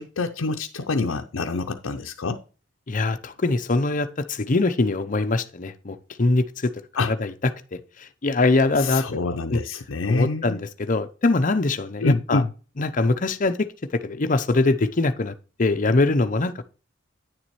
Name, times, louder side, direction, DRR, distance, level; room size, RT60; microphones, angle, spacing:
voice 1, 0.0-2.4 7.0-7.1 8.8-10.6 12.0-12.5, left 3 dB, 90° left, 0.6 m, -26 dB
voice 2, 2.9-6.7 7.1-7.3 7.7-9.0 9.5-9.6 10.1-12.4 12.8-13.7 14.0-15.3 15.6-16.6, left 3 dB, 40° left, 0.7 m, -23 dB
9.6 x 7.1 x 3.1 m
head